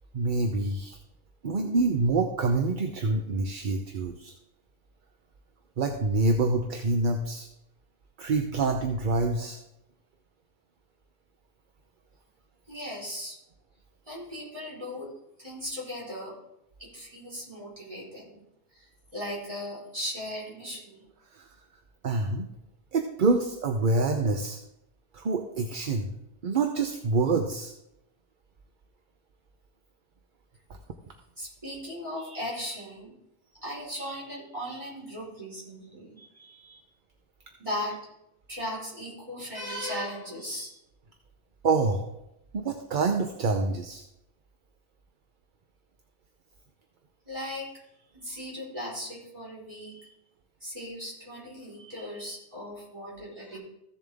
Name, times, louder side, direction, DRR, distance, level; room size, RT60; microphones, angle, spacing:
voice 1, 0.1-1.0 1.4-4.3 5.8-7.5 8.2-9.6 21.3-21.5 22.0-22.5 22.9-24.6 25.1-26.1 26.4-27.7 41.6-42.1 42.5-44.0, right 3 dB, 50° right, 5 dB, 0.8 m, -26 dB
voice 2, 12.7-13.4 14.1-15.1 15.4-16.4 16.8-18.4 18.7-21.0 31.4-33.2 33.6-36.8 37.6-38.0 38.5-40.8 47.3-47.7 48.1-50.1 50.6-53.6, equal, 30° right, -6 dB, 4.5 m, -37 dB
15.0 x 7.1 x 3.5 m, 0.83 s
omnidirectional pair, 1.2 m